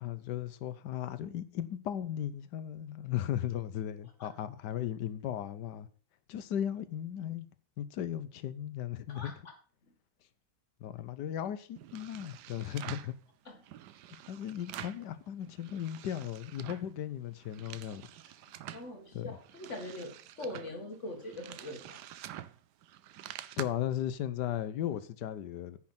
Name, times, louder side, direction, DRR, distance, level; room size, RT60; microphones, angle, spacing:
voice 1, 0.0-5.9 6.3-7.5 7.8-9.3 10.8-13.1 14.1-18.1 19.1-19.4 23.6-25.8, left 10 dB, 85° left, 1.4 m, -36 dB
voice 2, 9.1-9.5 13.5-13.6 16.7-16.8 18.7-22.0, left 1 dB, 45° left, 2.3 m, -42 dB
sound 1, 11.8-13.2 13.6-15.1 15.4-16.9 17.3-18.9 19.4-23.6, right 12 dB, 80° right, 1.2 m, -47 dB
9.8 x 6.6 x 5.8 m
omnidirectional pair, 1.8 m